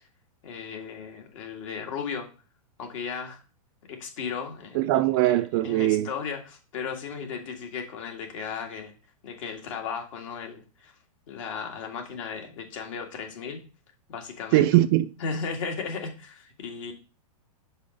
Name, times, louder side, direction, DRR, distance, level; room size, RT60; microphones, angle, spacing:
voice 1, 0.4-2.3 2.8-3.4 3.9-4.8 5.2-5.3 5.6-8.9 9.2-10.9 11.3-13.6 14.1-14.7 15.2-16.9, left 6 dB, 55° left, 1.9 m, -35 dB
voice 2, 4.7-6.1 14.5-15.1, right 15 dB, 40° right, 0.4 m, -21 dB
5.5 x 5.0 x 5.2 m
hypercardioid pair, 145°, 19 cm